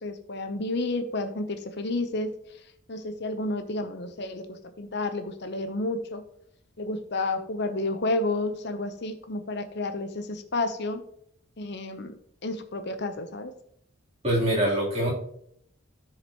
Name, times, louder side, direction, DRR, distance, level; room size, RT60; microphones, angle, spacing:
voice 1, 0.0-2.3 2.9-6.2 6.8-11.0 11.6-12.1 12.4-13.5, left 2 dB, 55° left, 8 dB, 0.9 m, -31 dB
voice 2, 14.2-15.1, right 1 dB, 30° right, -6 dB, 3.3 m, -24 dB
14.0 x 4.9 x 3.0 m, 0.68 s
head